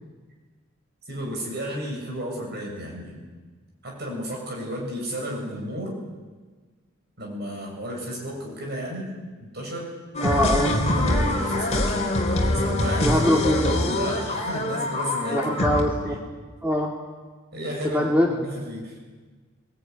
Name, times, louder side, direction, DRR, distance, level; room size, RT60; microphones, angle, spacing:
voice 1, 1.1-3.2 3.8-6.0 7.2-9.1 9.4-9.9 10.9-12.1 12.5-13.1 13.5-15.5 16.0-16.2 17.5-18.9, equal, 50° right, -1 dB, 7.8 m, -33 dB
sound 1, 10.1-15.8, left 1 dB, 30° left, 3.4 m, -24 dB
voice 2, 10.2-10.7 13.0-13.7 15.3-16.2 16.6-16.9 17.9-18.3, equal, 5° right, -1 dB, 2.2 m, -22 dB
22.0 x 20.5 x 9.8 m, 1.4 s
head